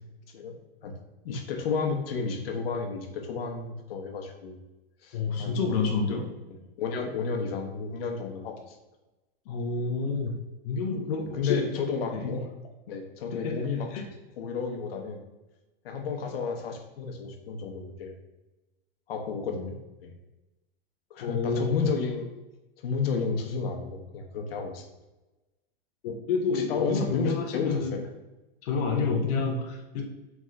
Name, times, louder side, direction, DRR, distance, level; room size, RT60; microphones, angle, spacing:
voice 1, 1.2-4.6 5.0-5.7 6.5-8.8 11.3-12.5 12.9-13.9 14.4-15.2 15.8-18.1 19.1-20.1 21.1-22.3 22.8-24.8 26.5-28.0 28.9-29.0, left 5 dB, 75° left, 3 dB, 0.9 m, -32 dB
voice 2, 5.1-6.3 9.5-10.3 10.6-11.7 12.1-12.3 13.3-13.6 13.9-14.0 21.2-21.9 26.0-27.9 28.6-30.1, left 4 dB, 40° left, 1 dB, 0.6 m, -29 dB
3.7 x 3.5 x 3.2 m, 1.1 s
supercardioid pair, 155°, 29 cm